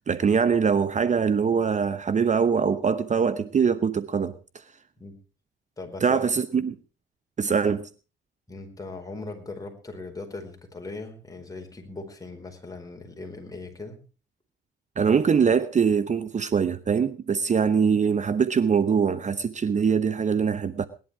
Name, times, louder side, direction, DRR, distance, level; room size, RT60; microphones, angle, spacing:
voice 1, 0.1-4.3 6.0-6.7 7.4-7.9 15.0-20.9, right 6 dB, 35° right, 0.9 m, -23 dB
voice 2, 5.8-6.3 8.5-14.0, left 3 dB, 15° left, 4.7 m, -39 dB
19.0 x 11.0 x 4.8 m
cardioid pair, 90°, 20 cm